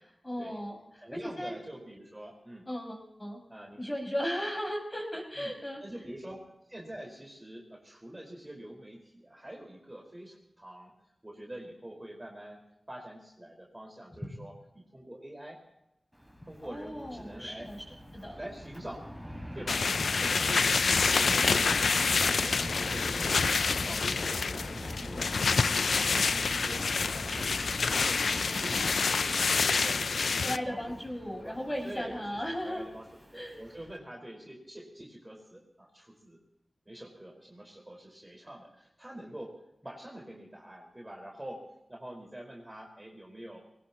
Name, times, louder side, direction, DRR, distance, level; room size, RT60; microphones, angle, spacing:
voice 1, 0.0-1.5 2.7-3.4 3.8-5.8 16.6-17.8 18.1-18.4 30.4-32.9 33.3-33.6, equal, 20° left, 0 dB, 6.3 m, -36 dB
voice 2, 1.0-2.6 3.5-3.9 5.4-5.5 5.8-10.9 11.2-12.6 12.9-15.6 16.5-17.7 18.4-19.1 19.5-21.9 22.1-28.2 28.5-28.8 29.2-30.9 31.4-31.6 31.8-33.1 33.3-36.4 36.8-41.6 41.9-43.6, right 1 dB, 20° right, 0 dB, 4.8 m, -45 dB
Fixed-wing aircraft airplane, 16.1-34.0, equal, ahead, 5.7 m, -42 dB
sound 1, 19.7-30.6, left 4 dB, 90° left, 0.5 m, -27 dB
22.5 x 19.0 x 3.0 m, 0.84 s
wide cardioid pair, 70°, 0 cm